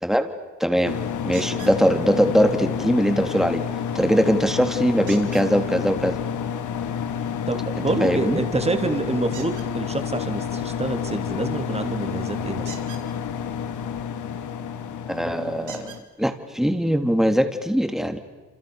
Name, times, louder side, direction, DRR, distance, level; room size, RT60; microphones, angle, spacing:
voice 1, 0.6-3.6 3.9-6.2 8.0-8.4 15.1-18.2, equal, ahead, 6 dB, 3.2 m, -21 dB
sound 1, 0.8-16.0, left 7 dB, 80° left, 2.1 m, -29 dB
sound 2, 1.3-1.8 5.1-5.5 9.3-9.7 12.6-13.0 14.7-14.8 15.7-16.0 17.0-17.1 17.6-17.7, right 8 dB, 80° right, 4.5 m, -41 dB
voice 2, 7.5-12.7, right 3 dB, 20° right, 6 dB, 3.3 m, -27 dB
28.5 x 28.0 x 7.1 m, 1.3 s
cardioid pair, 90°, 30 cm